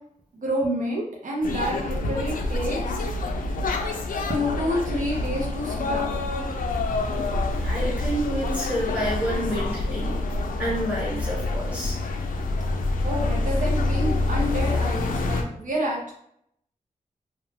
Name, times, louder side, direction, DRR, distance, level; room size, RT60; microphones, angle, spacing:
voice 1, 0.3-2.8 4.3-6.2 13.0-16.1, equal, 70° right, -3 dB, 0.6 m, -28 dB
sound 1, 1.4-15.4, left 2 dB, 85° left, 0.4 m, -27 dB
voice 2, 7.1-10.2 10.6-11.9, equal, 10° right, -7 dB, 1.3 m, -29 dB
2.4 x 2.2 x 3.1 m, 0.71 s
wide cardioid pair, 150°, 14 cm